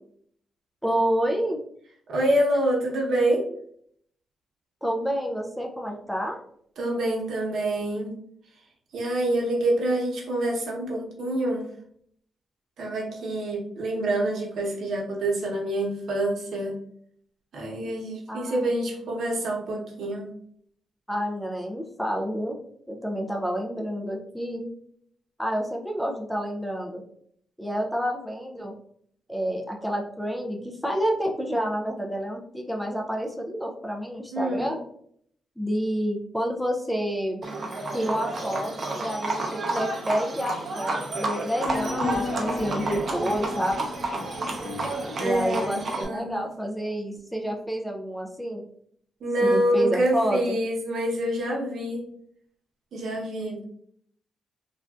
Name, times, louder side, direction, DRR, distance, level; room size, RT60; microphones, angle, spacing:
voice 1, 0.8-1.6 4.8-6.4 18.3-18.7 21.1-22.6 22.9-24.7 25.4-27.0 27.6-28.8 29.3-34.8 35.6-37.4 37.9-43.9 45.2-48.7 49.4-50.6, equal, 5° left, 1 dB, 0.4 m, -29 dB
voice 2, 2.1-3.5 6.8-8.1 8.9-11.7 12.8-16.8 17.5-20.3 34.3-34.7 45.2-46.5 49.2-52.1 52.9-53.6, right 1 dB, 75° right, -2 dB, 0.9 m, -26 dB
Livestock farm animals working animals, 37.4-46.0, right 2 dB, 45° right, 0.7 m, -31 dB
sound 1, 41.6-46.2, left 3 dB, 55° left, 1.0 m, -35 dB
3.3 x 2.5 x 2.3 m, 0.65 s
cardioid pair, 110°, 0 cm